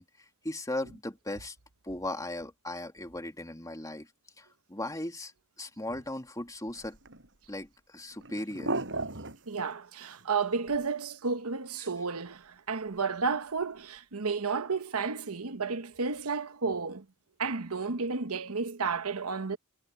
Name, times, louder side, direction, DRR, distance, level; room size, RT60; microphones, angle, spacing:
voice 1, 0.0-1.6 1.8-4.1 4.4-5.3 5.6-7.0 7.5-8.7 11.8-11.9, left 1 dB, 15° left, 2.9 m, -37 dB
sound 1, 6.7-7.7 8.0-9.7 10.0-10.9 11.2-11.3 11.5-11.6 13.0-13.1 13.3-13.4 13.6-13.7, right 2 dB, 60° right, 6.6 m, -37 dB
voice 2, 9.5-17.0 17.4-19.6, right 4 dB, 80° right, 1.1 m, -32 dB
head